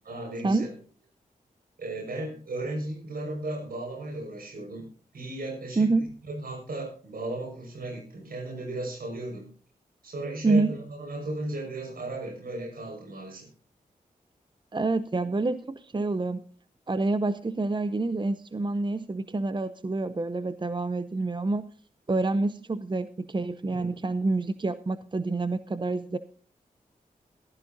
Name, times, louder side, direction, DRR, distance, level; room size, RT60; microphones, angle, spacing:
voice 1, 0.0-0.7 1.8-4.9 5.1-9.5 10.0-13.5 23.7-23.9, right 2 dB, 75° right, 4 dB, 5.7 m, -35 dB
voice 2, 5.8-6.1 10.4-10.8 14.7-16.4 16.9-21.7 22.1-26.2, right 3 dB, 30° right, 13 dB, 0.7 m, -27 dB
15.5 x 13.5 x 2.7 m, 0.41 s
cardioid pair, 50°, 15 cm